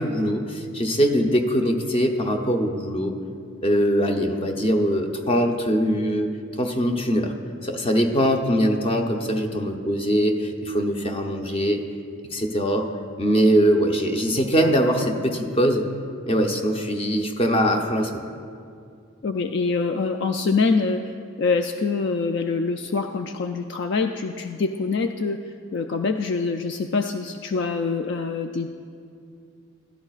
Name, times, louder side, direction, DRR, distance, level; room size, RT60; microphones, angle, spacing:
voice 1, 0.0-3.2 3.6-7.3 7.6-11.8 12.3-12.9 13.2-15.8 16.3-18.2, equal, 25° left, 3 dB, 0.7 m, -22 dB
voice 2, 19.2-25.4 25.7-28.7, left 4 dB, 55° left, 6 dB, 0.3 m, -25 dB
14.5 x 12.5 x 2.4 m, 2.3 s
head